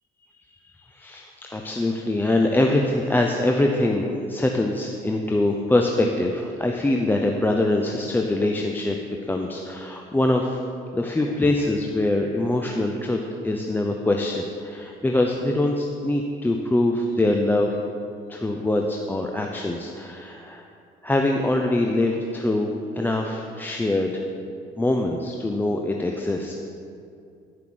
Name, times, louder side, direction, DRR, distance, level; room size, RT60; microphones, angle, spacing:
voice 1, 0.6-9.0 9.2-10.6 10.9-13.2 13.4-17.8 18.3-20.6 21.0-24.2 24.8-26.6, left 2 dB, 10° left, 1 dB, 0.7 m, -23 dB
11.0 x 5.8 x 7.8 m, 2.4 s
cardioid pair, 110°, 17 cm